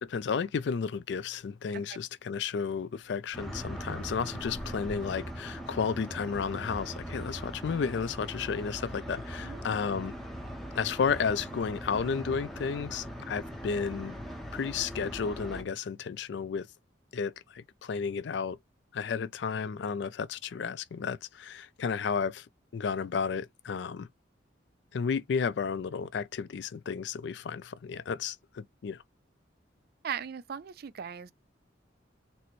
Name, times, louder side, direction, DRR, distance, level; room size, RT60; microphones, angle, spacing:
voice 1, 0.0-10.1 10.8-14.2 14.5-16.7 17.1-18.6 18.9-22.5 22.7-24.1 24.9-29.0, left 6 dB, 65° left, 0.4 m, -32 dB
sound 1, 3.3-15.6, equal, ahead, 0.7 m, -40 dB
voice 2, 30.0-31.3, right 8 dB, 55° right, 0.4 m, -38 dB
4.1 x 2.2 x 3.0 m
head